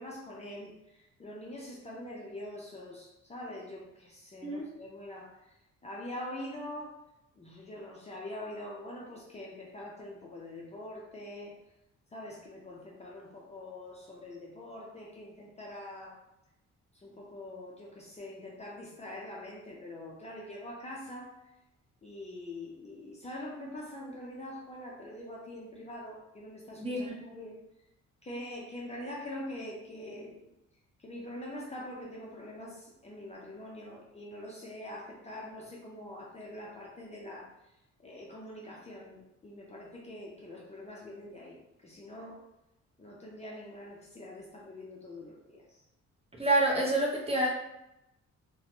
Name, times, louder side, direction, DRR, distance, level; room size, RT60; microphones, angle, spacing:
voice 1, 0.0-5.6 5.8-7.0 7.4-11.6 12.1-16.2 17.0-21.4 22.0-27.6 28.2-30.5 31.0-37.5 38.0-42.4 43.0-45.8, left 1 dB, 20° left, -3 dB, 0.5 m, -44 dB
voice 2, 26.8-27.2 46.4-47.5, right 2 dB, 20° right, -3 dB, 0.7 m, -28 dB
2.7 x 2.2 x 2.9 m, 0.88 s
cardioid pair, 90°, 30 cm